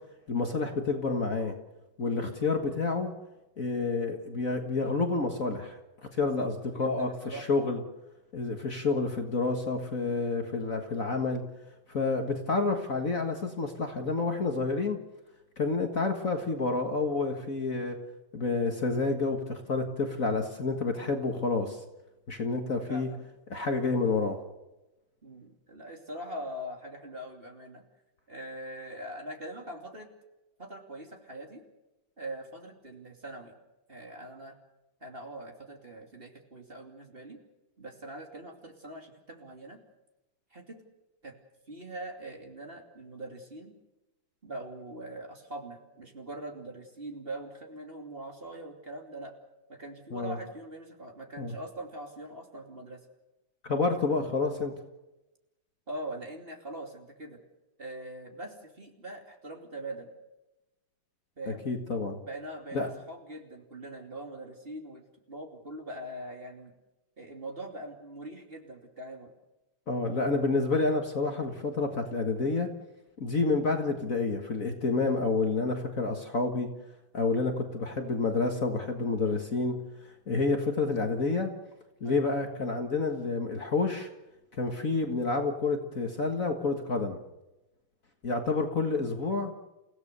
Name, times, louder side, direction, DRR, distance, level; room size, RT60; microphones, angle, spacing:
voice 1, 0.3-1.5 2.0-3.1 3.6-5.8 6.1-6.5 6.8-7.8 8.3-11.4 11.9-15.0 15.6-18.0 18.3-21.8 22.3-23.1 23.5-24.4 50.1-50.4 51.4-51.5 53.6-54.7 61.7-62.2 62.7-62.9 69.9-72.7 73.2-76.7 77.1-79.8 80.3-81.5 82.0-84.1 84.5-87.2 88.2-89.5, left 3 dB, 40° left, 4 dB, 2.0 m, -29 dB
voice 2, 6.2-7.5 22.9-23.2 25.2-27.8 28.3-30.1 30.6-31.6 32.2-33.5 33.9-34.6 35.0-37.4 37.8-39.8 40.5-40.8 41.2-41.3 41.7-43.7 44.4-49.3 49.7-53.0 54.1-54.3 55.9-57.4 57.8-60.1 61.4-61.7 62.2-66.7 67.2-69.3 82.0-82.3, right 1 dB, 25° right, 2 dB, 3.0 m, -42 dB
29.5 x 16.5 x 6.8 m, 0.99 s
omnidirectional pair, 2.3 m